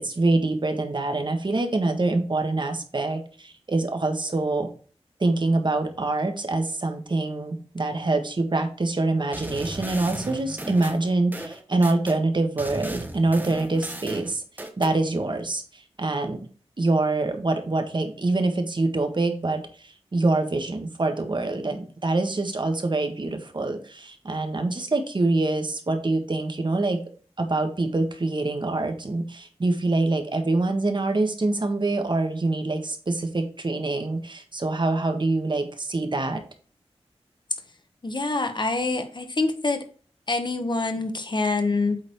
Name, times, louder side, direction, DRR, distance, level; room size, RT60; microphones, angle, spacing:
voice 1, 0.0-4.7 5.2-14.4 14.8-16.4 16.8-27.0 27.4-36.4, right 2 dB, 45° right, 5 dB, 1.6 m, -25 dB
sound 1, 9.3-12.2 12.6-15.0, right 1 dB, 15° right, 1.3 m, -36 dB
voice 2, 38.0-39.8 40.3-42.0, left 3 dB, 45° left, 7 dB, 1.5 m, -25 dB
8.5 x 4.1 x 4.7 m, 0.41 s
wide cardioid pair, 70°, 11 cm